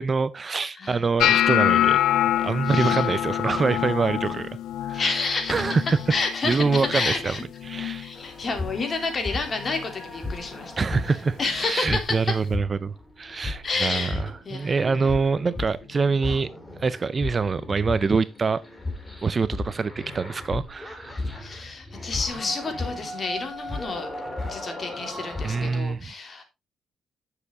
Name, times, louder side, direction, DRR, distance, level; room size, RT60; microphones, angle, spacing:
voice 1, 0.0-2.0 2.3-4.5 4.9-5.0 5.5-6.0 6.4-7.4 7.6-8.1 10.8-16.5 16.8-18.6 19.2-21.1 25.4-26.1, right 4 dB, 35° right, 0.6 m, -25 dB
voice 2, 0.8-1.1 2.7-3.1 4.9-5.8 6.1-7.4 8.0-10.9 11.4-12.4 13.6-14.8 21.4-24.1 24.4-26.4, left 3 dB, 40° left, 3.1 m, -30 dB
sound 1, 1.2-7.3 7.6-8.1 8.4-9.0 9.6-9.8 11.6-11.7, left 12 dB, 80° left, 0.4 m, -25 dB
sound 2, 8.2-25.8, left 2 dB, 15° left, 2.9 m, -35 dB
9.8 x 6.8 x 3.7 m
cardioid pair, 90°, 0 cm